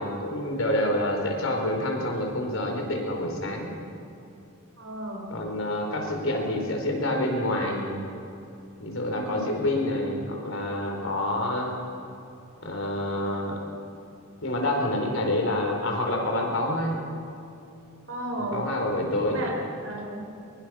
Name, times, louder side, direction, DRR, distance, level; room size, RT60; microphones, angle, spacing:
voice 1, 0.0-3.7 5.3-7.9 8.8-11.7 12.6-13.6 14.4-17.0 18.5-19.5, left 1 dB, 75° left, 2 dB, 4.5 m, -27 dB
voice 2, 4.8-5.3 9.1-9.4 18.1-18.6 19.3-19.5 19.8-20.2, right 1 dB, 70° right, 1 dB, 4.8 m, -34 dB
23.0 x 22.5 x 6.4 m, 2.7 s
head